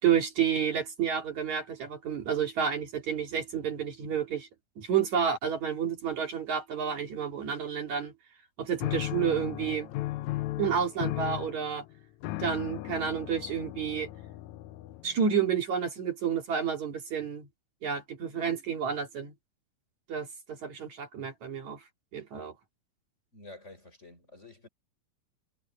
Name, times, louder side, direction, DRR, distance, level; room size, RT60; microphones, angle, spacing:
voice 1, 0.0-4.5 4.8-8.1 8.6-9.9 10.6-11.9 12.4-14.1 15.0-17.5 17.8-19.3 20.1-21.8 22.1-22.5, right 7 dB, 60° right, 3.7 m, -30 dB
sound 1, 8.8-15.3, left 16 dB, 75° left, 1.8 m, -36 dB
voice 2, 23.3-24.7, left 2 dB, 20° left, 4.9 m, -49 dB
omnidirectional pair, 3.8 m